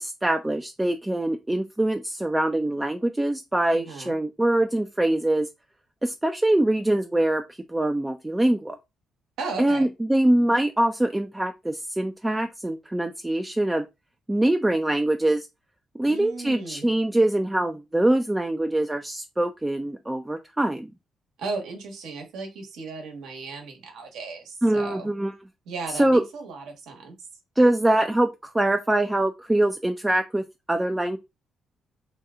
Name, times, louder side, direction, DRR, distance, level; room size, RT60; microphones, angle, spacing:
voice 1, 0.0-5.5 6.0-7.4 7.7-8.8 9.6-13.9 14.3-15.5 15.9-20.9 24.6-25.3 25.9-26.2 27.6-31.2, right 1 dB, 10° right, 0.3 m, -23 dB
voice 2, 3.7-4.1 9.4-9.9 16.1-16.9 21.4-25.1 25.7-27.2, right 4 dB, 85° right, 1.1 m, -36 dB
2.8 x 2.2 x 3.6 m
cardioid pair, 90°, 0 cm